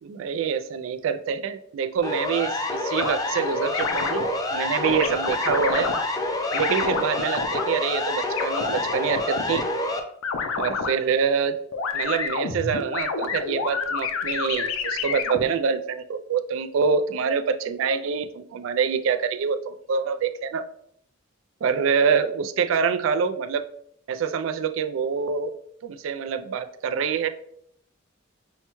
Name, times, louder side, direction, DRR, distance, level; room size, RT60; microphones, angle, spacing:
voice 1, 0.0-5.9 6.5-9.6 10.6-11.6 11.9-20.6 21.6-23.6 24.1-25.6 25.8-27.3, right 6 dB, 75° right, 9 dB, 0.3 m, -26 dB
Siren, 2.0-10.0, left 2 dB, 20° left, 0.4 m, -27 dB
sound 1, 3.0-3.1 3.7-4.3 4.8-6.0 6.5-7.6 8.4-9.6 10.2-10.9 11.7-15.4, left 5 dB, 90° left, 0.4 m, -28 dB
5.5 x 2.2 x 2.9 m, 0.69 s
head